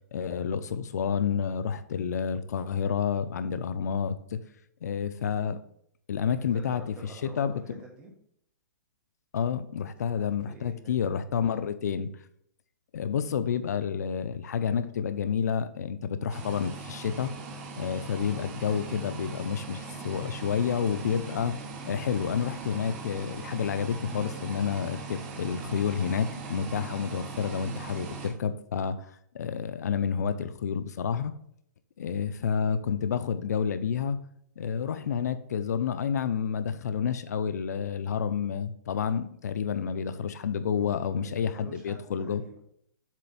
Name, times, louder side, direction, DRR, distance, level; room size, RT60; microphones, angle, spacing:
voice 1, 0.1-4.4 4.8-5.6 6.1-6.8 7.4-7.8 9.3-12.1 12.9-17.4 17.8-31.3 32.0-34.2 34.6-42.4, left 7 dB, 70° left, 12 dB, 0.6 m, -29 dB
voice 2, 6.4-8.1 10.0-11.2 40.7-42.6, right 2 dB, 10° right, 1 dB, 1.3 m, -48 dB
sound 1, 16.3-28.3, right 4 dB, 30° right, 1.2 m, -40 dB
7.5 x 3.4 x 5.5 m, 0.69 s
hypercardioid pair, 170°, 9 cm